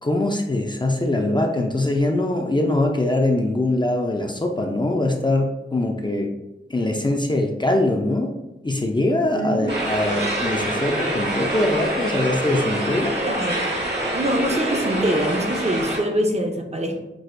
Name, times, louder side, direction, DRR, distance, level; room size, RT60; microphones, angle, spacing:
voice 1, 0.0-6.3 6.7-8.3 8.6-13.1, left 1 dB, 25° left, 2 dB, 0.4 m, -22 dB
voice 2, 9.3-9.8 13.2-13.6 14.1-17.0, equal, 35° right, 2 dB, 0.6 m, -24 dB
sound 1, 9.7-16.0, right 1 dB, 65° right, 1.1 m, -26 dB
6.0 x 2.4 x 2.5 m, 0.97 s
wide cardioid pair, 80°, 19 cm